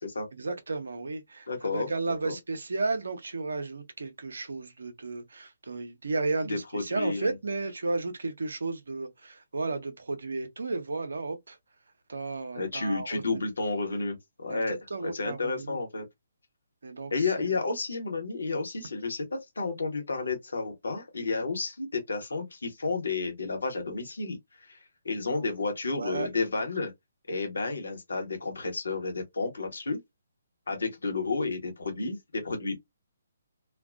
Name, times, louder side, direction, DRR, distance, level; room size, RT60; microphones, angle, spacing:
voice 1, 0.3-11.6 12.1-13.4 14.5-15.8 16.8-17.3 25.9-26.3, right 3 dB, 65° right, 0.7 m, -33 dB
voice 2, 1.5-1.9 2.2-2.3 6.5-7.3 12.5-14.8 15.0-16.0 17.1-24.8 25.0-26.9 27.3-30.0 30.7-32.8, left 3 dB, 65° left, 1.0 m, -31 dB
2.5 x 2.2 x 2.3 m
figure-of-eight pair, 135°, 0 cm